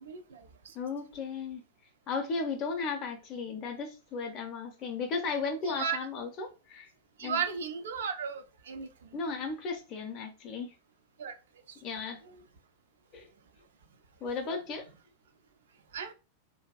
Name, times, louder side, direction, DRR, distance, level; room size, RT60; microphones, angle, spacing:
voice 1, 0.0-0.4 5.7-6.0 7.2-8.9 11.2-11.3 15.9-16.1, right 7 dB, 60° right, 0.3 m, -34 dB
voice 2, 0.7-1.6 2.1-6.9 7.2-7.4 9.1-10.7 11.8-12.2 13.1-13.3 14.2-14.9, left 4 dB, 35° left, 0.5 m, -35 dB
2.5 x 2.2 x 2.3 m
figure-of-eight pair, 90°, 0 cm